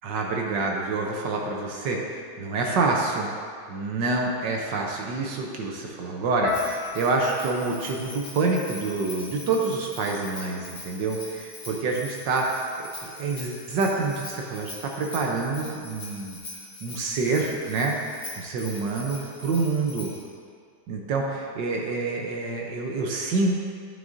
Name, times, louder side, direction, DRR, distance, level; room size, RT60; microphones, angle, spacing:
voice 1, 0.0-3.3 3.7-12.5 12.8-16.4 16.8-20.1 20.9-23.7, right 3 dB, 65° right, 0 dB, 1.3 m, -27 dB
sound 1, 6.4-10.6 10.9-11.7 12.3-12.5, left 7 dB, 85° left, 1.7 m, -38 dB
Bell, 6.5-20.3, left 2 dB, 50° left, 1.8 m, -42 dB
11.0 x 6.5 x 2.6 m, 2.1 s
omnidirectional pair, 2.3 m